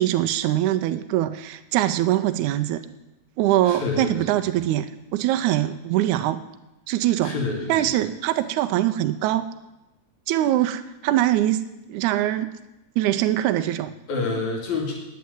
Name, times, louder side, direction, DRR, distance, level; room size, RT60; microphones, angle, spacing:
voice 1, 0.0-2.8 3.4-4.9 5.1-6.4 6.9-7.4 7.7-9.5 10.3-11.6 11.9-12.5 13.0-14.0, right 13 dB, 85° right, 9 dB, 2.0 m, -22 dB
voice 2, 3.6-4.2 7.2-7.8 14.1-14.9, left 3 dB, 75° left, 0 dB, 3.7 m, -27 dB
9.6 x 8.2 x 9.4 m, 0.97 s
omnidirectional pair, 3.4 m